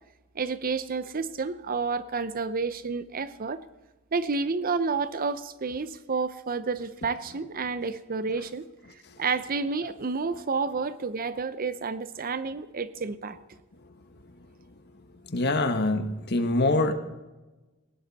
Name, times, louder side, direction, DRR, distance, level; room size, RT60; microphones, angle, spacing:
voice 1, 0.3-3.6 4.1-8.6 9.2-13.4, right 4 dB, 40° right, 14 dB, 0.7 m, -30 dB
voice 2, 15.3-16.9, left 2 dB, 50° left, 8 dB, 1.5 m, -24 dB
19.0 x 17.0 x 4.2 m, 1.1 s
head